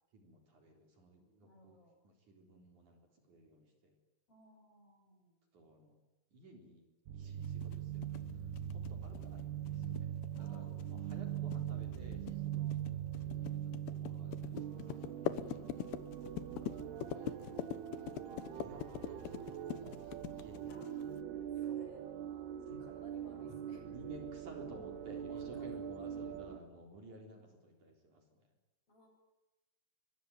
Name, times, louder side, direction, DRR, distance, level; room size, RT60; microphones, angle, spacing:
voice 1, 0.1-1.8 2.1-3.0 3.3-3.9 5.5-6.0 6.3-6.8 7.1-8.2 8.7-10.1 10.4-12.8 13.2-14.8 16.6-16.7 18.0-19.9 20.3-20.7 22.7-22.8 23.9-28.2, right 1 dB, 50° right, 3 dB, 5.1 m, -55 dB
voice 2, 1.4-2.0 4.3-5.4 8.8-9.1 10.4-10.7 11.2-11.4 12.6-12.8 14.9-15.7 16.6-17.7 20.6-20.9 21.5-22.1 22.8-24.3 25.1-25.7 27.3-27.7 28.9-29.1, left 1 dB, 35° left, 2 dB, 8.2 m, -61 dB
sound 1, 7.1-26.6, right 10 dB, 80° right, 3.4 m, -42 dB
sound 2, 7.4-21.2, left 12 dB, 80° left, 3.2 m, -43 dB
23.5 x 23.5 x 9.5 m, 1.1 s
omnidirectional pair, 4.6 m